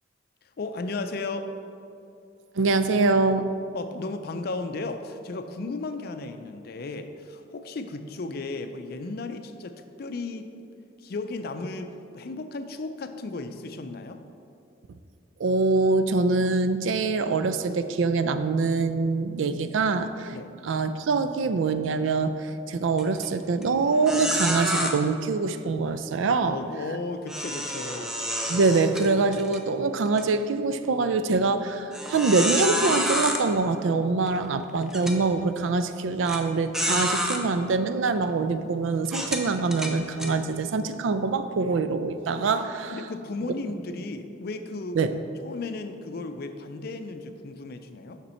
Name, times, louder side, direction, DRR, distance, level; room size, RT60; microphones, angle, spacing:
voice 1, 0.6-1.5 3.7-10.5 11.0-14.2 20.3-20.5 26.4-28.1 42.9-48.2, left 3 dB, 50° left, 8 dB, 0.4 m, -35 dB
voice 2, 2.6-3.5 15.4-20.4 20.6-26.6 28.5-42.9 45.0-45.1, right 3 dB, 80° right, 10 dB, 0.4 m, -24 dB
sound 1, 23.0-23.3 23.6-23.7 24.1-24.9 27.3-29.6 30.1-30.2 30.8-30.9 31.9-33.4 34.3-34.4 34.9-35.2 36.3-36.4 36.7-37.4 38.1-38.2 39.1-40.3, equal, 5° right, 0.5 m, -28 dB
6.9 x 5.9 x 4.3 m, 2.6 s
head